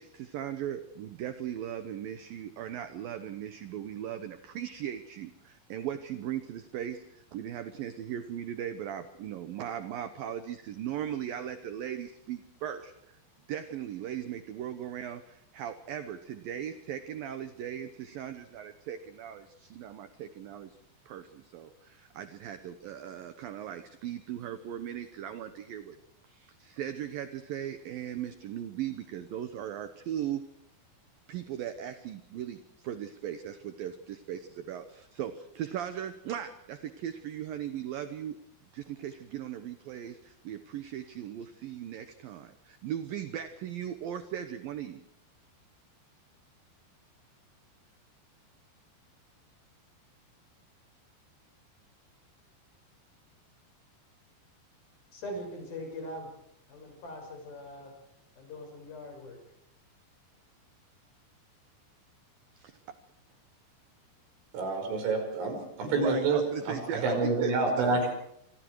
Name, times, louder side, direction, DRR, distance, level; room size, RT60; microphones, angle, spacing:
voice 1, 0.0-13.2 13.5-20.8 21.1-26.0 26.2-30.4 31.3-38.4 38.7-45.0 62.5-62.8 65.9-68.0, right 10 dB, 70° right, 10 dB, 2.4 m, -38 dB
voice 2, 55.1-56.3 56.7-57.9 58.4-59.4, left 1 dB, 55° left, 3 dB, 8.0 m, -41 dB
voice 3, 64.5-68.1, right 3 dB, 85° right, 4 dB, 7.8 m, -28 dB
28.0 x 25.5 x 4.8 m, 0.74 s
omnidirectional pair, 5.2 m